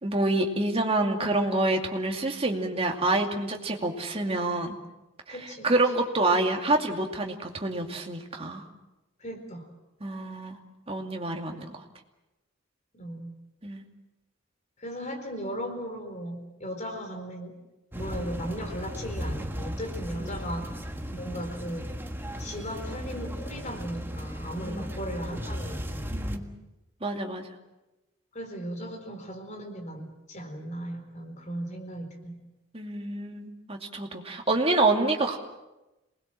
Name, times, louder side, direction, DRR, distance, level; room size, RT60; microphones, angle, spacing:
voice 1, 0.0-4.8 5.3-5.4 5.6-8.7 10.0-10.6 10.9-11.8 13.6-13.8 20.2-20.3 24.6-24.9 26.1-26.5 27.0-27.5 32.7-35.4, right 2 dB, 30° right, 2 dB, 2.6 m, -27 dB
voice 2, 5.3-5.7 9.2-9.7 12.9-13.3 14.8-17.6 17.9-20.8 21.1-21.9 22.4-26.2 28.3-32.4, equal, 40° left, 4 dB, 4.4 m, -37 dB
sound 1, 17.9-26.4, equal, 10° right, 1.6 m, -36 dB
27.0 x 20.5 x 7.6 m, 1.0 s
head